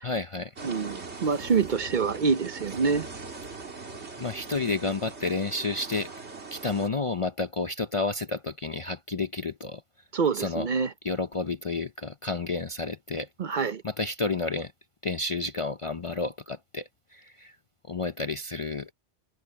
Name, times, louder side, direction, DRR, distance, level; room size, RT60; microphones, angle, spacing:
voice 1, 0.0-0.5 4.2-6.1 6.5-9.8 10.3-10.7 11.0-13.3 13.8-14.7 15.0-17.5 17.9-18.9, left 3 dB, 40° left, 0.5 m, -30 dB
voice 2, 0.6-3.1 10.1-10.9 13.4-13.8, right 5 dB, 50° right, 0.8 m, -26 dB
sound 1, 0.6-6.9, right 4 dB, 70° right, 2.6 m, -41 dB
omnidirectional pair, 1.2 m